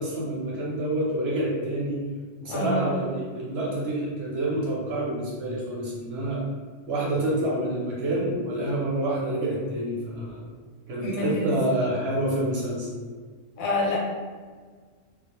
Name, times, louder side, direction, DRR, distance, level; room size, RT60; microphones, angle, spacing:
voice 1, 0.0-2.0 2.4-6.4 6.9-10.5 10.9-12.9, right 1 dB, 60° right, -5 dB, 0.7 m, -27 dB
voice 2, 2.4-2.9 11.0-11.5 13.6-14.0, left 2 dB, 85° left, -3 dB, 1.1 m, -27 dB
2.3 x 2.0 x 2.9 m, 1.5 s
omnidirectional pair, 1.4 m